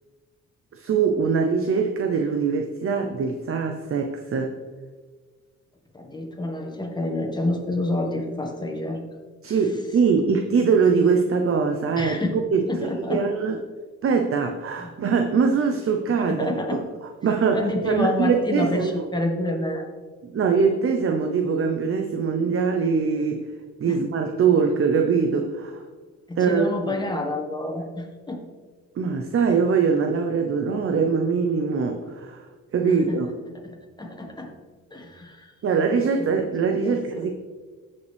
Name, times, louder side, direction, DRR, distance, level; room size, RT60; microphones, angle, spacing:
voice 1, 0.7-4.5 9.4-12.2 12.5-13.6 14.0-16.8 17.2-19.1 20.2-23.4 23.8-25.8 26.4-27.0 29.0-32.4 32.7-33.3 35.6-37.3, right 5 dB, 45° right, 4 dB, 0.8 m, -22 dB
voice 2, 5.9-9.0 9.5-9.6 12.0-12.4 12.7-13.2 14.8-14.9 16.3-16.8 17.5-19.9 23.9-24.0 26.3-28.4 32.9-33.2 34.0-34.5 34.9-35.5 36.2-36.3 36.8-37.3, left 2 dB, 15° left, 2 dB, 1.7 m, -28 dB
15.0 x 5.4 x 3.5 m, 1.4 s
cardioid pair, 90°, 30 cm